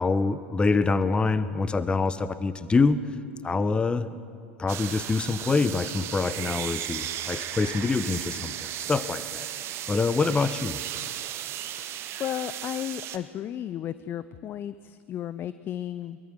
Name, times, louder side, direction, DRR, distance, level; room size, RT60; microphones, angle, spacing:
voice 1, 0.0-3.0 3.4-4.1 4.6-9.5 9.9-10.8, left 4 dB, 15° left, 14 dB, 0.9 m, -25 dB
sound 1, 4.7-13.2, right 11 dB, 35° right, 1.2 m, -35 dB
voice 2, 12.2-16.2, left 11 dB, 30° left, 15 dB, 0.6 m, -34 dB
23.5 x 22.0 x 6.5 m, 2.3 s
figure-of-eight pair, 85°, 7 cm